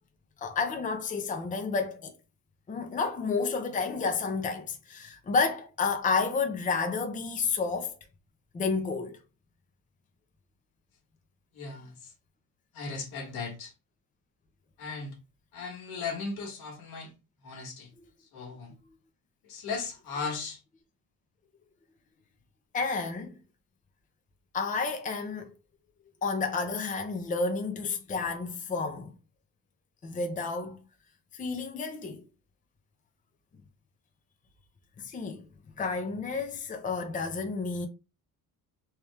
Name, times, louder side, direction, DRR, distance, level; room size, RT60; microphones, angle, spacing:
voice 1, 0.4-2.1 2.7-8.0 8.5-9.2 18.0-18.1 22.7-23.4 24.5-25.5 26.2-29.1 30.0-30.8 31.3-32.2 35.0-35.5 35.8-37.9, left 4 dB, 20° left, 0.6 m, -30 dB
voice 2, 11.5-11.9 12.7-13.7 14.8-15.2 15.5-17.1 17.4-17.9 18.3-18.7 19.5-20.6, left 4 dB, 80° left, 1.5 m, -37 dB
3.4 x 2.9 x 3.4 m
cardioid pair, 140°, 37 cm